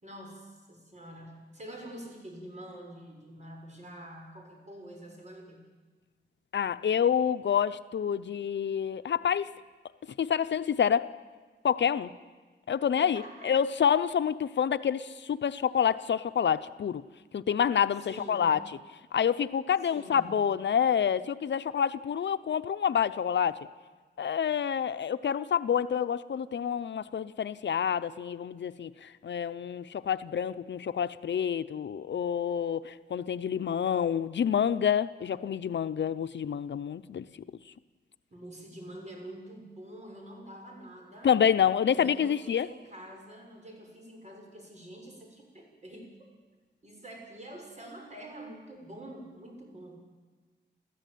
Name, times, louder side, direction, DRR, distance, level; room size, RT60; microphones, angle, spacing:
voice 1, 0.0-5.6 12.9-13.6 18.0-18.6 19.9-20.5 38.3-41.3 41.8-46.1 46.8-50.0, right 1 dB, 40° right, 1 dB, 6.9 m, -46 dB
voice 2, 6.5-9.5 10.2-11.1 11.6-12.1 12.7-17.0 17.3-18.6 19.1-23.6 24.2-37.3 41.2-42.7, left 8 dB, 75° left, 12 dB, 0.7 m, -28 dB
29.5 x 14.5 x 9.3 m, 1.4 s
wide cardioid pair, 105°, 19 cm